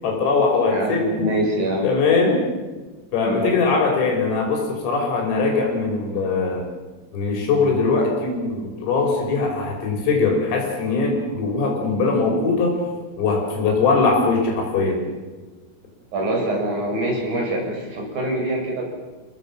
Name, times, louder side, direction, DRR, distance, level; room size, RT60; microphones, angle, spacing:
voice 1, 0.0-1.3 1.8-2.4 3.1-6.6 7.1-12.8 13.2-15.0, left 4 dB, 80° left, 1 dB, 8.1 m, -21 dB
voice 2, 0.7-1.9 3.2-3.6 16.1-18.9, right 1 dB, 45° right, -1 dB, 7.5 m, -24 dB
29.5 x 18.5 x 7.6 m, 1.2 s
omnidirectional pair, 5.8 m